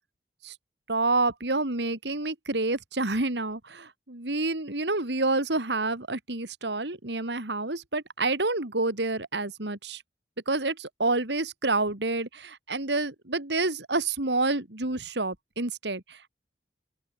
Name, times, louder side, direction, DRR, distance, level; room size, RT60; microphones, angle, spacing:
voice 1, 0.9-10.0 10.5-16.3, right 2 dB, 75° right, 2.8 m, -28 dB
open air
head